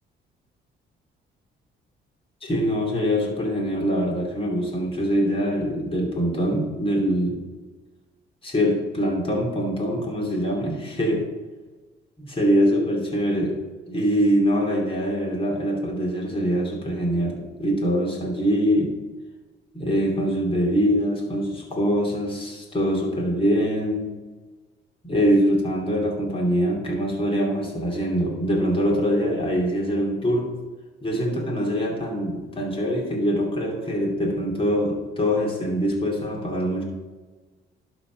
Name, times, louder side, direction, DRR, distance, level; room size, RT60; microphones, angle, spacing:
voice 1, 2.4-7.4 8.4-11.3 12.2-13.5 13.9-18.9 19.7-24.1 25.0-30.5 31.0-36.8, equal, 25° left, -1 dB, 2.9 m, -23 dB
12.0 x 4.2 x 5.3 m, 1.3 s
cardioid pair, 90°, 20 cm